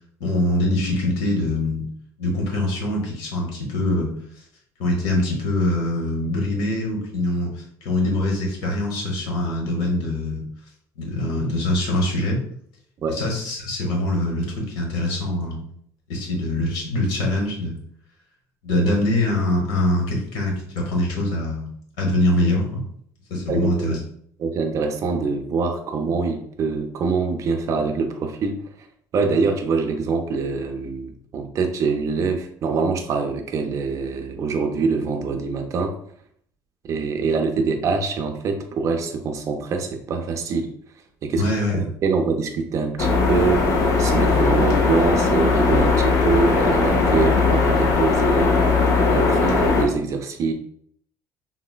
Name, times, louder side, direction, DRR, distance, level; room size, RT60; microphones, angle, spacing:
voice 1, 0.2-1.9 2.2-4.1 4.8-7.5 7.8-10.4 11.0-12.4 13.1-15.6 16.1-17.8 18.6-21.7 22.0-22.8 23.3-24.0 41.4-41.8, left 1 dB, 85° left, -1 dB, 1.0 m, -23 dB
voice 2, 23.5-24.0 24.4-28.6 29.1-35.9 36.8-40.7 41.2-41.4 41.7-48.6 49.1-50.5, right 4 dB, 45° right, 5 dB, 0.4 m, -24 dB
sound 1, 43.0-49.9, left 4 dB, 45° left, 0.6 m, -19 dB
3.8 x 2.1 x 2.2 m, 0.65 s
cardioid pair, 125°, 7 cm